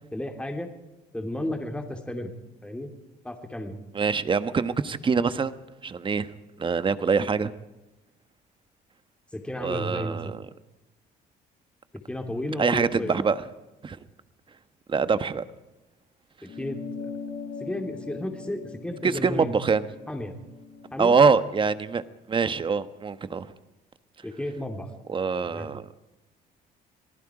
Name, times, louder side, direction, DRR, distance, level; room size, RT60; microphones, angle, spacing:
voice 1, 0.1-0.7 1.1-2.3 2.6-2.9 3.2-3.8 9.3-10.3 12.1-13.2 16.4-16.8 17.6-19.5 20.1-20.4 20.9-21.2 24.2-24.9 25.4-25.7, left 1 dB, 5° left, 4 dB, 2.7 m, -33 dB
voice 2, 3.9-5.6 5.8-6.3 6.6-7.5 9.6-10.4 12.6-13.4 13.8-14.0 14.9-15.4 19.0-19.8 21.0-23.5 25.1-25.8, right 5 dB, 30° right, 12 dB, 1.3 m, -24 dB
sound 1, 16.5-21.3, left 4 dB, 75° left, 5.9 m, -40 dB
27.5 x 19.0 x 5.0 m, 1.0 s
cardioid pair, 110°, 17 cm